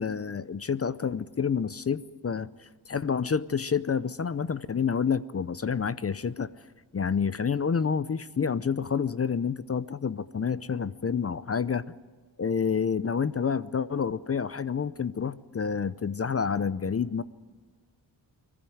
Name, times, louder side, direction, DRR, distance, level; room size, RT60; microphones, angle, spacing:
voice 1, 0.0-6.5 6.9-11.9 12.4-17.2, left 6 dB, 35° left, 16 dB, 0.6 m, -28 dB
20.0 x 14.5 x 9.4 m, 1.5 s
cardioid pair, 80°, 43 cm